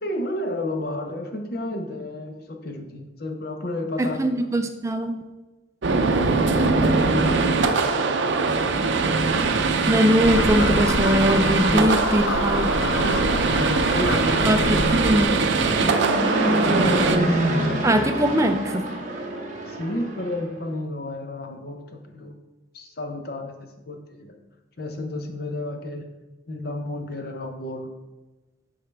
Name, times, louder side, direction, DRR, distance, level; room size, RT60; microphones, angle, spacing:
voice 1, 0.0-4.5 6.5-8.3 11.6-12.0 13.0-14.8 15.8-18.0 19.7-22.4 22.7-24.3 24.8-26.1 26.5-27.9, left 1 dB, 55° left, 4 dB, 0.8 m, -32 dB
voice 2, 4.0-5.2 9.9-12.7 14.4-15.4 17.8-18.9, equal, 15° right, 6 dB, 0.4 m, -21 dB
sound 1, 5.8-17.2, right 4 dB, 75° right, 0.5 m, -22 dB
sound 2, 10.2-15.3, left 4 dB, 80° left, 0.4 m, -28 dB
Fixed-wing aircraft airplane, 13.2-20.4, right 1 dB, 40° right, 1.0 m, -27 dB
9.6 x 3.8 x 3.4 m, 1.1 s
head